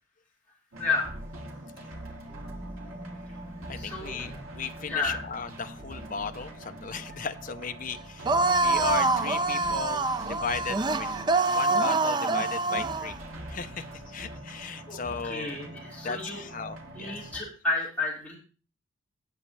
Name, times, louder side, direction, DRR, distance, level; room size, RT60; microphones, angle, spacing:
sound 1, 0.7-17.4, right 1 dB, 80° right, 2.6 m, -43 dB
voice 1, 0.8-1.1 3.7-4.2 4.8-5.2 14.9-16.4 16.9-18.3, left 3 dB, 5° left, -6 dB, 4.7 m, -31 dB
sound 2, 2.3-11.4, right 1 dB, 45° right, 4.8 m, -47 dB
voice 2, 3.7-8.3 8.6-11.2 11.5-13.2 13.5-15.6 16.0-17.3, left 5 dB, 40° left, 8 dB, 0.7 m, -36 dB
sound 3, 8.2-13.1, right 3 dB, 20° right, 0.4 m, -25 dB
17.5 x 7.1 x 3.3 m, 0.37 s
head